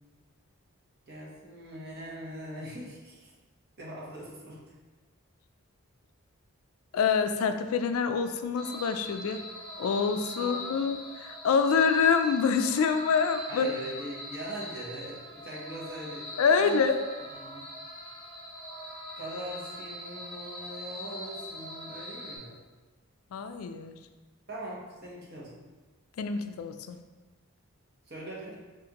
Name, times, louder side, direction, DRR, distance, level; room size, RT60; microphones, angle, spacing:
voice 1, 1.1-3.3 3.8-4.7 10.4-10.7 13.5-16.9 17.3-17.6 19.2-22.6 24.5-25.7 28.1-28.6, right 1 dB, 45° right, -4 dB, 1.0 m, -41 dB
voice 2, 6.9-9.4 9.8-13.7 16.4-17.0 23.3-23.9 26.2-27.0, left 6 dB, 80° left, 8 dB, 0.3 m, -26 dB
sound 1, 8.6-22.4, equal, 5° right, 0.9 m, -42 dB
6.2 x 2.5 x 2.9 m, 1.2 s
head